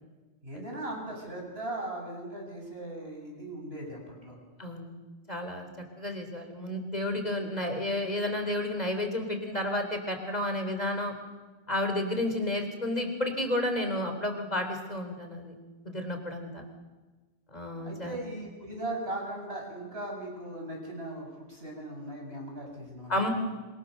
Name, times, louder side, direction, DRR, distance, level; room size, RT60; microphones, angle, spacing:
voice 1, 0.4-4.4 17.8-23.3, right 1 dB, 70° right, 0 dB, 8.0 m, -38 dB
voice 2, 4.6-4.9 5.3-5.7 6.0-11.1 11.7-15.5 15.8-16.6 17.5-18.2 23.1-23.3, left 1 dB, 40° left, 5 dB, 4.0 m, -31 dB
26.5 x 26.0 x 6.8 m, 1.2 s
omnidirectional pair, 1.1 m